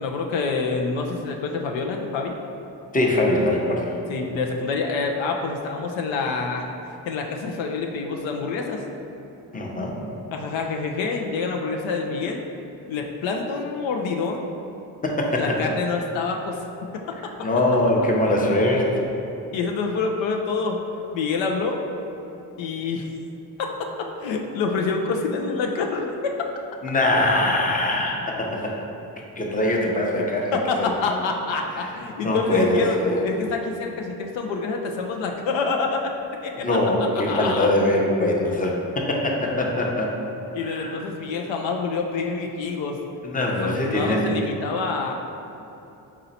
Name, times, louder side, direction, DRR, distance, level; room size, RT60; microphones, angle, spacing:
voice 1, 0.0-2.4 4.1-6.7 7.1-8.8 10.3-12.4 12.9-14.5 15.4-16.6 16.9-17.5 19.5-20.8 21.1-21.9 22.6-23.1 23.6-23.7 24.0-26.1 30.2-30.3 30.5-33.0 33.2-36.0 36.4-36.6 37.1-37.7 40.5-43.0 43.6-45.1, left 4 dB, 70° left, 2 dB, 0.5 m, -27 dB
voice 2, 2.9-3.9 9.5-10.0 15.0-15.6 17.4-18.9 26.8-28.7 29.4-30.9 32.2-33.2 36.6-40.1 40.6-41.0 43.2-44.3, left 1 dB, 20° left, -1 dB, 0.7 m, -22 dB
4.2 x 2.8 x 4.1 m, 2.9 s
supercardioid pair, 55°, 47 cm